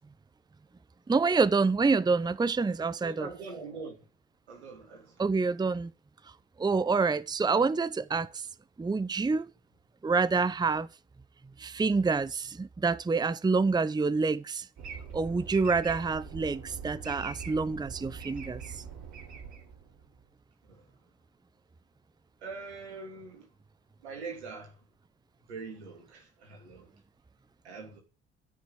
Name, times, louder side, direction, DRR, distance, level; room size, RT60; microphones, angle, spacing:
voice 1, 1.1-3.3 5.2-5.9 6.6-8.5 8.8-9.5 10.0-10.9 11.6-14.7 15.1-18.8, right 4 dB, 15° right, 0.7 m, -27 dB
voice 2, 3.0-3.9 4.5-5.2 20.6-20.9 22.4-23.5 24.0-24.8 25.5-26.9 27.6-28.0, right 4 dB, 85° right, 2.9 m, -43 dB
sound 1, 14.8-20.2, right 6 dB, 60° right, 3.9 m, -43 dB
13.0 x 6.2 x 8.2 m
figure-of-eight pair, 45°, 32 cm